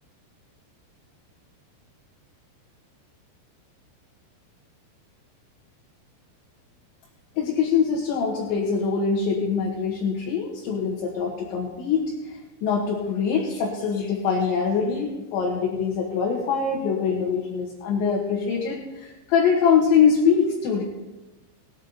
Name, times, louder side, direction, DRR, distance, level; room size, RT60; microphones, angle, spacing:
voice 1, 7.4-20.8, left 6 dB, 75° left, -2 dB, 3.5 m, -23 dB
20.0 x 8.2 x 4.1 m, 1.1 s
omnidirectional pair, 5.6 m